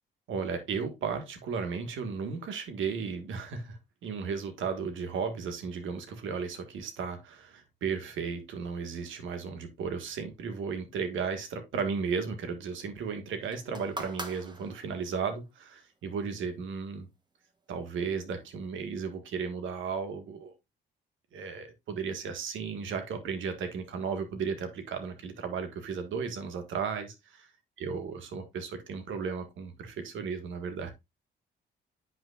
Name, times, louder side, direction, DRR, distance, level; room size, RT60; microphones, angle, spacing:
voice 1, 0.3-17.1 17.7-20.5 21.3-27.5 27.8-30.9, right 5 dB, 75° right, 1.8 m, -35 dB
sound 1, 13.5-15.3 16.2-16.3, right 1 dB, 20° right, 1.3 m, -42 dB
8.9 x 5.7 x 2.4 m
cardioid pair, 90°, 20 cm